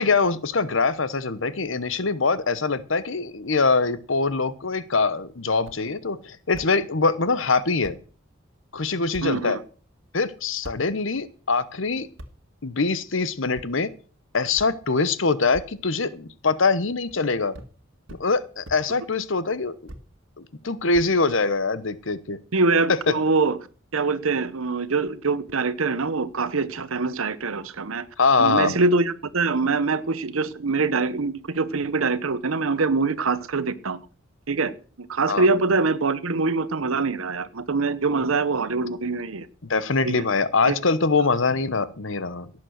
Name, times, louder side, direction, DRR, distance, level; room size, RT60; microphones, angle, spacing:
voice 1, 0.0-8.0 8.7-9.6 10.1-12.1 12.6-13.9 14.3-17.6 18.2-19.8 20.4-22.4 22.9-23.1 28.2-28.8 35.3-35.5 39.7-42.5, left 4 dB, 65° left, 16 dB, 1.0 m, -23 dB
sound 1, 5.6-5.8 6.5-6.7 7.5-7.6 7.8-8.0 9.1-9.3 10.6-10.8 12.2-12.3 13.5-13.7 14.6-14.7 15.5-15.7 16.8-17.2 17.5-17.7 18.1-18.2 18.6-18.8 19.9-20.0 20.9-21.6, equal, 65° right, 1.8 m, -41 dB
voice 2, 9.2-9.6 22.5-23.6 23.9-28.1 28.4-34.0 34.5-34.7 35.0-39.5 40.0-40.2 40.6-40.7, right 3 dB, 85° right, 13 dB, 0.9 m, -24 dB
17.5 x 7.6 x 6.4 m, 0.40 s
head